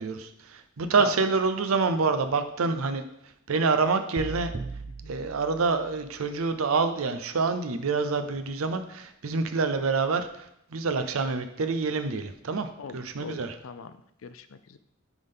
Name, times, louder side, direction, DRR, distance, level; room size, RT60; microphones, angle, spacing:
voice 1, 0.0-3.0 3.5-4.5 5.1-13.5, right 4 dB, 80° right, 9 dB, 0.6 m, -27 dB
sound 1, 4.2-6.3, right 3 dB, 35° right, 0.4 m, -39 dB
voice 2, 12.8-13.9 14.2-14.8, left 6 dB, 70° left, 11 dB, 0.5 m, -40 dB
9.5 x 3.6 x 3.6 m, 0.79 s
head